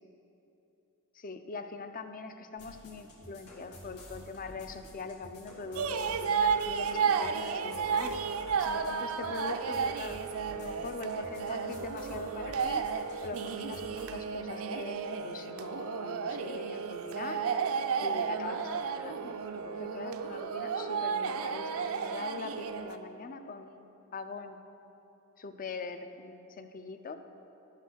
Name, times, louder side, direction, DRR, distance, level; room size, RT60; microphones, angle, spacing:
voice 1, 1.1-8.1 8.6-10.2 10.6-12.9 13.2-17.4 18.0-24.6 25.4-27.2, left 4 dB, 40° left, 9 dB, 0.5 m, -42 dB
sound 1, 2.6-14.0, equal, 90° left, 2.1 m, -51 dB
sound 2, 5.8-23.0, right 6 dB, 65° right, 0.5 m, -33 dB
12.0 x 5.8 x 6.3 m, 3.0 s
head